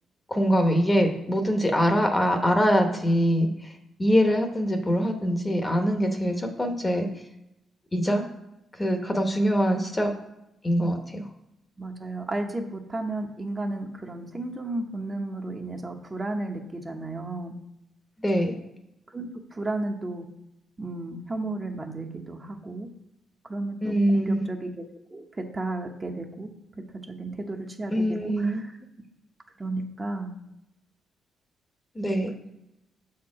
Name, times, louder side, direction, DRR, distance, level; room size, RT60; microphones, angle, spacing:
voice 1, 0.3-3.7 4.0-7.1 7.9-8.3 8.8-10.1 10.6-11.2 18.2-18.5 23.8-24.5 27.9-28.6 31.9-32.3, equal, 15° left, 5 dB, 1.0 m, -23 dB
voice 2, 11.8-17.5 19.1-20.3 20.8-22.9 23.5-24.8 25.1-26.5 27.1-28.7 29.6-30.3, right 2 dB, 25° right, 2 dB, 1.0 m, -33 dB
6.6 x 4.4 x 4.9 m, 0.87 s
cardioid pair, 90°, 0 cm